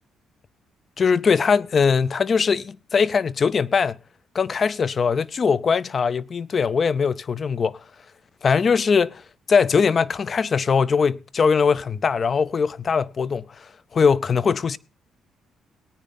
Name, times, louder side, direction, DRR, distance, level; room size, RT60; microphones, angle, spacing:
voice 1, 1.0-4.0 4.3-7.8 8.4-9.2 9.5-13.7 13.9-14.8, left 5 dB, 45° left, 0.5 m, -21 dB
18.5 x 9.1 x 4.0 m
cardioid pair, 90°, 0 cm